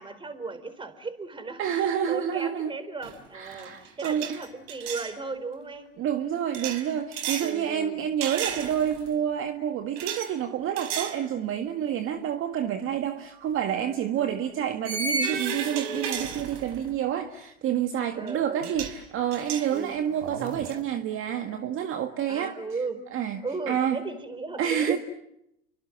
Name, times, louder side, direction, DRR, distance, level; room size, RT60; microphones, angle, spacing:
voice 1, 0.0-5.9 7.4-8.1 14.2-14.4 18.2-18.7 19.7-20.0 22.3-23.0 23.4-25.0, right 4 dB, 15° right, 4.4 m, -36 dB
voice 2, 1.6-2.8 3.3-4.4 6.0-22.6 23.1-24.0 24.6-25.0, right 9 dB, 40° right, 1.9 m, -28 dB
sound 1, 3.0-3.3 3.5-5.1 6.5-7.5 8.2-9.1 10.0-10.3 10.8-11.2 11.7-11.8 13.4-13.5 14.8-16.9 18.3-18.4 18.6-19.0 19.3-20.8, right 5 dB, 60° right, 4.9 m, -33 dB
30.0 x 24.5 x 7.5 m
hypercardioid pair, 95°, 33 cm